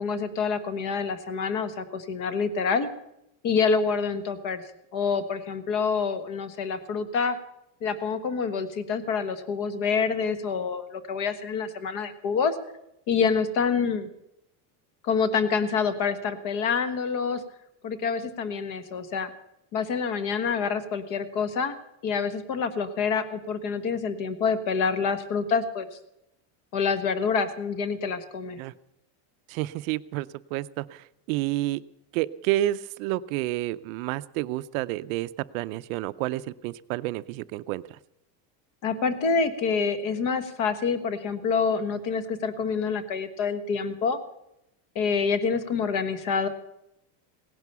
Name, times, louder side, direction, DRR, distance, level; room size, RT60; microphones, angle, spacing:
voice 1, 0.0-2.9 3.4-4.6 4.9-7.4 7.8-12.6 13.1-14.1 15.0-17.4 17.8-19.3 19.7-21.7 22.0-25.9 26.7-28.6 38.8-44.2 44.9-46.5, left 5 dB, 45° left, 11 dB, 1.4 m, -27 dB
voice 2, 29.5-31.8 32.1-37.8, right 15 dB, 65° right, 14 dB, 0.6 m, -30 dB
17.5 x 11.0 x 6.9 m, 0.83 s
cardioid pair, 180°, 44 cm